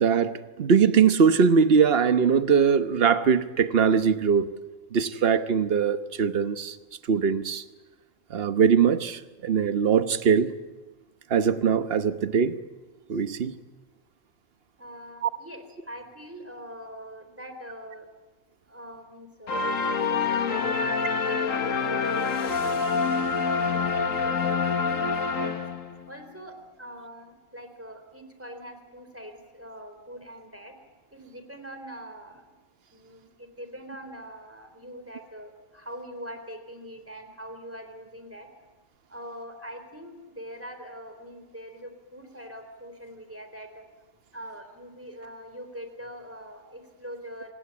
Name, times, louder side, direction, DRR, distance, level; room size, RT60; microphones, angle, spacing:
voice 1, 0.0-4.5 4.9-6.8 7.1-7.6 8.3-10.5 11.3-12.5 13.1-13.5 15.2-15.3, right 6 dB, 50° right, 1.2 m, -21 dB
voice 2, 14.8-18.1 18.7-19.6 19.9-23.1 23.5-25.6 26.1-30.8 31.1-32.4 32.9-38.5 39.1-43.8 44.3-47.5, equal, 10° right, 3.8 m, -42 dB
sound 1, 19.5-26.1, left 5 dB, 85° left, 1.9 m, -26 dB
26.5 x 19.0 x 8.6 m
omnidirectional pair, 1.3 m